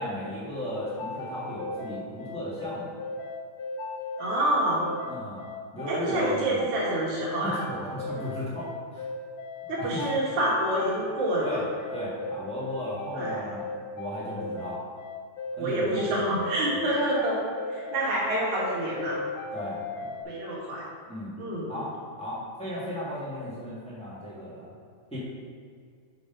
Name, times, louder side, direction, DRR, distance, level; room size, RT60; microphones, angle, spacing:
voice 1, 0.0-2.9 5.1-5.4 5.7-6.6 7.4-9.0 9.6-10.1 11.4-11.6 11.9-14.8 15.6-16.9 19.5-20.1 21.1-21.3 21.7-21.9 22.2-24.7 25.1-25.2, equal, 5° left, -9 dB, 0.5 m, -35 dB
sound 1, 0.9-20.2, left 3 dB, 80° left, 1.5 m, -36 dB
voice 2, 4.2-4.9 5.9-7.6 9.7-11.5 13.1-13.4 15.6-17.4 17.7-19.2 20.3-20.8 21.4-21.7, right 1 dB, 70° right, -5 dB, 2.7 m, -27 dB
6.6 x 4.0 x 5.3 m, 2.1 s
omnidirectional pair, 3.5 m